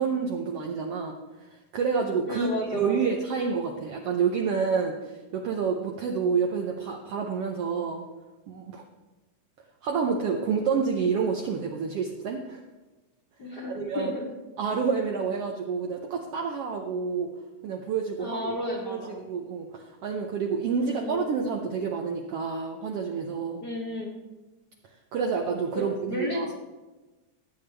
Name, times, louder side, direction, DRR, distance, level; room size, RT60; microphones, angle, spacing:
voice 1, 0.0-8.0 8.5-8.8 9.8-12.6 13.7-14.1 14.6-17.3 17.6-18.6 18.9-23.6 25.1-26.5, right 5 dB, 75° right, 2 dB, 1.4 m, -28 dB
voice 2, 2.3-3.0 13.4-14.2 18.2-19.1 20.8-21.2 23.6-24.1 25.7-26.5, left 1 dB, 45° left, -3 dB, 1.4 m, -33 dB
15.5 x 8.5 x 3.4 m, 1.2 s
omnidirectional pair, 3.6 m